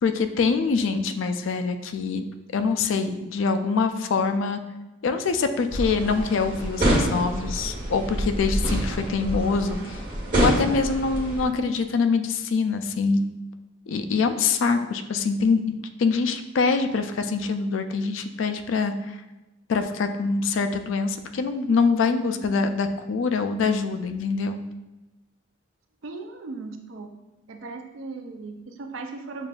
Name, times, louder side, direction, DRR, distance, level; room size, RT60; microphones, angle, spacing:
voice 1, 0.0-2.2 2.5-4.6 5.0-10.0 10.3-13.2 13.9-19.2 19.7-24.6, left 4 dB, 75° left, 9 dB, 0.3 m, -24 dB
sound 1, 5.7-11.4, right 1 dB, 40° right, 1.1 m, -26 dB
voice 2, 26.0-27.1 27.5-29.5, right 3 dB, 75° right, 4 dB, 0.5 m, -37 dB
6.8 x 2.5 x 2.3 m, 1.1 s
head